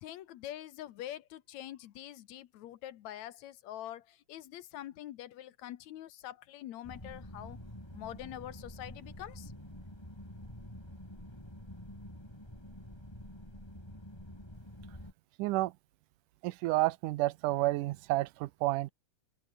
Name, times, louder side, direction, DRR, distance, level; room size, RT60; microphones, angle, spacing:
voice 1, 0.0-7.6 7.9-9.5, left 12 dB, 70° left, 2.1 m, -45 dB
sound 1, 6.8-15.1, left 1 dB, 5° left, 6.6 m, -48 dB
voice 2, 15.4-15.7 16.4-18.9, right 18 dB, 85° right, 2.2 m, -30 dB
omnidirectional pair, 3.6 m